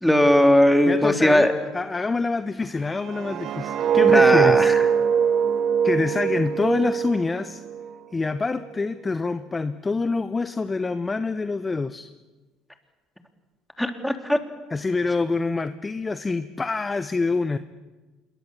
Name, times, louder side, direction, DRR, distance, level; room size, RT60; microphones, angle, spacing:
voice 1, 0.0-1.5 4.1-4.8 13.8-14.4, left 1 dB, 5° left, 5 dB, 3.3 m, -18 dB
voice 2, 0.9-4.8 5.8-7.6 8.1-12.1 14.7-17.6, left 3 dB, 25° left, 12 dB, 0.9 m, -26 dB
sound 1, 2.9-7.9 8.3-8.6, right 7 dB, 55° right, 1.9 m, -21 dB
26.5 x 22.5 x 7.3 m, 1.3 s
hypercardioid pair, 65°, 0 cm